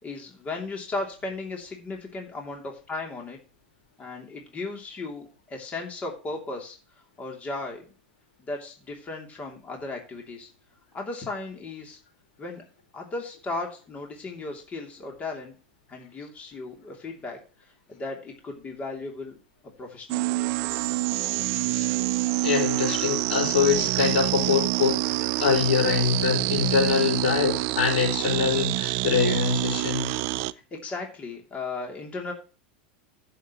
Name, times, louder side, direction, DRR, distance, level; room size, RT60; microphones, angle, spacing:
voice 1, 0.0-3.4 4.0-7.8 8.4-10.5 10.9-12.0 12.4-12.6 12.9-15.6 15.9-19.4 19.8-20.4 30.4-32.3, left 3 dB, 25° left, 1 dB, 3.0 m, -36 dB
sound 1, 20.1-30.5, right 19 dB, 55° right, 0.5 m, -26 dB
voice 2, 22.4-25.0 25.4-30.1, left 6 dB, 80° left, 2 dB, 5.2 m, -24 dB
14.5 x 6.9 x 3.1 m, 0.35 s
hypercardioid pair, 115°, 5 cm